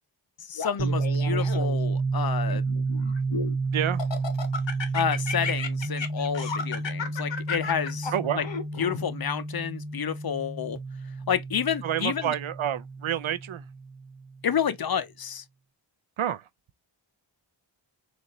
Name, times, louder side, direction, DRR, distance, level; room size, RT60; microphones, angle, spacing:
voice 1, 0.5-2.7 4.9-8.4 8.8-10.8 11.3-12.3 14.4-15.4, left 8 dB, 50° left, 0.6 m, -29 dB
Laughter, 0.6-1.9 2.5-3.6 4.0-9.0, left 5 dB, 65° left, 0.9 m, -34 dB
sound 1, 0.8-14.4, right 3 dB, 35° right, 1.1 m, -30 dB
voice 2, 8.1-8.5 11.8-13.7 16.2-16.5, right 10 dB, 80° right, 0.6 m, -28 dB
4.1 x 2.4 x 3.0 m
wide cardioid pair, 55°, 47 cm